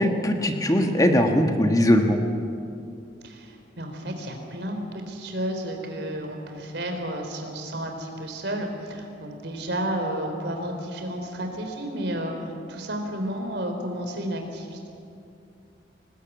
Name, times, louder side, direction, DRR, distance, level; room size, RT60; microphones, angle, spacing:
voice 1, 0.0-2.2, left 1 dB, 20° left, 4 dB, 1.4 m, -20 dB
voice 2, 3.2-14.9, right 1 dB, 65° right, 4 dB, 3.7 m, -32 dB
21.0 x 19.0 x 9.2 m, 2.5 s
head